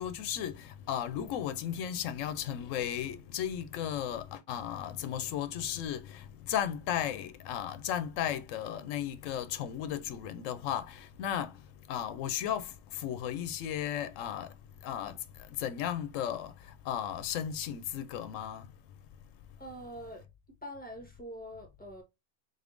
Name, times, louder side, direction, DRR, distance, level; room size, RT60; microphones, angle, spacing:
voice 1, 0.0-18.7, left 10 dB, 90° left, 0.9 m, -35 dB
voice 2, 19.6-20.2 20.6-22.0, equal, 10° left, 1.1 m, -44 dB
3.9 x 3.5 x 2.5 m
omnidirectional pair, 1.3 m